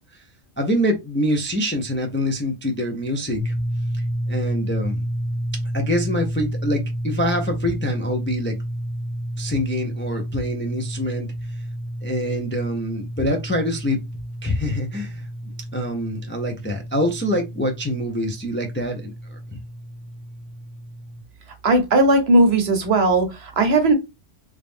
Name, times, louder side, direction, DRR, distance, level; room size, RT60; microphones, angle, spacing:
voice 1, 0.6-3.5 4.3-5.1 5.7-8.5 9.4-11.3 12.0-14.0 14.4-15.3 15.7-19.4, equal, 15° left, 0.4 m, -25 dB
sound 1, 3.4-21.2, equal, 45° left, 1.8 m, -30 dB
voice 2, 21.6-23.9, right 2 dB, 60° right, 1.1 m, -17 dB
3.2 x 2.7 x 3.4 m
omnidirectional pair, 1.2 m